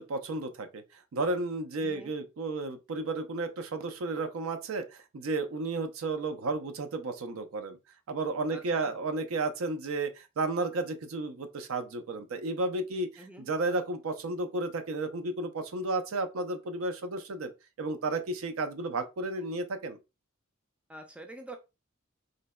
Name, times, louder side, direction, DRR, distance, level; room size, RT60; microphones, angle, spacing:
voice 1, 0.0-7.8 8.1-17.5 17.8-20.0, right 2 dB, 70° right, 0.5 m, -33 dB
voice 2, 1.8-2.1 8.5-8.9 13.2-13.5 20.9-21.6, right 1 dB, 5° right, 0.3 m, -46 dB
3.8 x 2.1 x 2.2 m
head